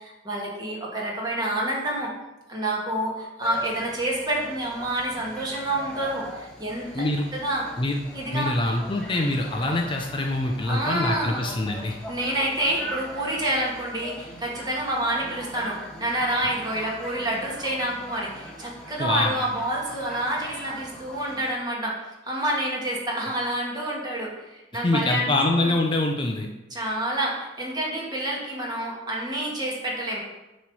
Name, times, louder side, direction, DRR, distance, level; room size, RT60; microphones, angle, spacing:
voice 1, 0.0-2.1 2.5-7.1 7.3-7.6 8.1-8.5 10.7-11.4 11.9-21.9 22.3-25.3 25.5-25.7 26.7-30.2, right 1 dB, 25° right, -3 dB, 1.5 m, -28 dB
sound 1, 3.4-21.5, equal, 5° left, 1.1 m, -41 dB
voice 2, 6.9-7.2 7.8-7.9 8.3-12.0 19.0-19.4 24.8-26.5, left 2 dB, 25° left, 2 dB, 0.5 m, -24 dB
7.0 x 3.1 x 6.1 m, 1.0 s
head